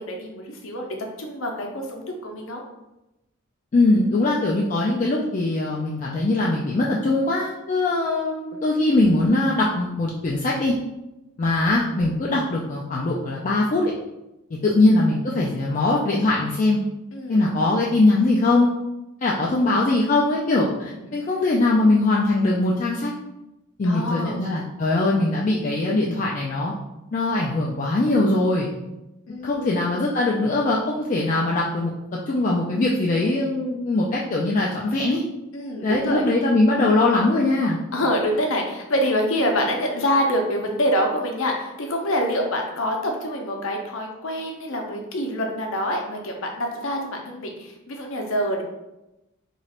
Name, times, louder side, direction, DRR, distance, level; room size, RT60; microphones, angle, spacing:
voice 1, 0.0-2.6 14.6-14.8 17.1-17.4 20.9-21.1 23.8-24.4 29.3-29.8 35.5-36.3 37.9-48.6, equal, 60° left, 1 dB, 0.6 m, -26 dB
voice 2, 3.7-10.7 11.4-13.8 14.6-16.8 17.3-18.7 19.2-23.1 23.8-26.7 27.1-28.7 29.4-31.9 32.3-35.2 35.8-37.8, left 2 dB, 35° left, -3 dB, 0.3 m, -21 dB
3.0 x 2.4 x 4.2 m, 0.96 s
head